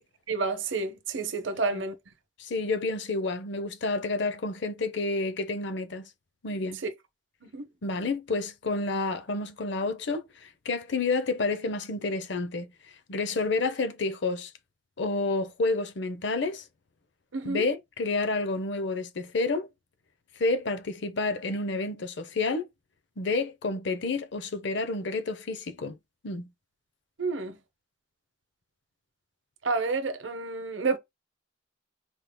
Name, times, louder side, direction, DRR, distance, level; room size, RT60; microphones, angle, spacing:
voice 1, 0.3-1.9 6.8-6.9 7.4-7.7 17.3-17.6 27.2-27.6 29.6-31.0, right 4 dB, 70° right, 0.8 m, -29 dB
voice 2, 1.5-1.8 2.4-6.1 6.4-6.8 7.8-12.7 13.1-14.5 15.0-16.6 17.4-19.7 20.4-22.7 23.2-26.0 26.2-26.5, left 3 dB, 60° left, 0.7 m, -29 dB
4.4 x 3.5 x 2.2 m
head